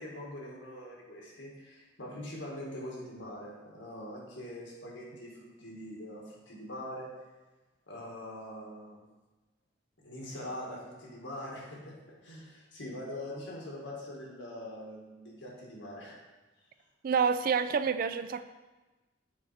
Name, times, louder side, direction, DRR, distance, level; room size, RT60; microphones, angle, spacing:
voice 1, 0.0-7.1 7.9-9.0 10.0-16.1, left 1 dB, 80° left, -3 dB, 1.8 m, -43 dB
voice 2, 17.0-18.4, right 6 dB, 50° right, 11 dB, 0.3 m, -28 dB
7.1 x 4.4 x 4.2 m, 1.2 s
head